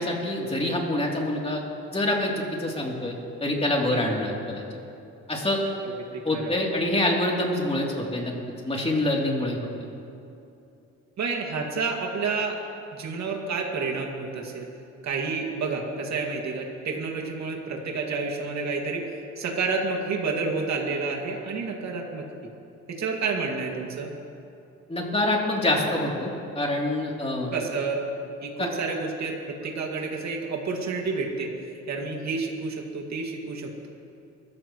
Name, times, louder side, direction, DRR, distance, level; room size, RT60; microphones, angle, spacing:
voice 1, 0.0-1.6 1.9-2.3 2.6-4.6 5.3-5.6 6.2-8.3 8.6-9.6 24.9-27.5 28.6-28.7, left 1 dB, 20° left, -2 dB, 3.2 m, -26 dB
voice 2, 3.7-4.1 5.8-6.5 11.2-12.6 12.9-14.7 15.0-19.1 19.4-22.5 22.9-24.1 27.5-28.0 28.4-31.5 31.9-33.9, right 4 dB, 65° right, 1 dB, 2.3 m, -30 dB
23.5 x 14.0 x 3.2 m, 2.7 s
cardioid pair, 90°, 30 cm